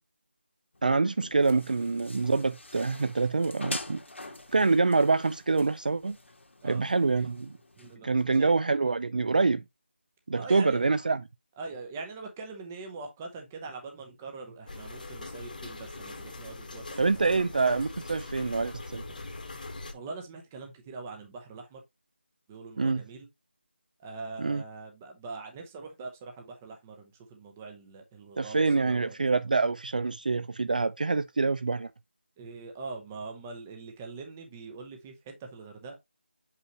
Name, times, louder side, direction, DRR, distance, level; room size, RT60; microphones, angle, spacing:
sound 1, 0.7-8.0, left 2 dB, 80° left, 1.8 m, -45 dB
voice 1, 0.8-4.0 4.5-6.2 6.6-7.6 8.0-9.6 10.3-11.2 17.0-19.0 22.8-23.0 24.4-24.6 28.4-31.9, right 3 dB, 45° right, 0.3 m, -26 dB
voice 2, 7.8-8.5 10.4-10.9 11.6-17.5 19.1-19.2 19.9-21.8 22.5-23.3 24.0-29.1 32.4-35.9, right 4 dB, 10° right, 0.8 m, -43 dB
sound 2, 14.7-19.9, left 2 dB, 45° left, 1.3 m, -42 dB
6.5 x 5.6 x 3.0 m
figure-of-eight pair, 175°, 6 cm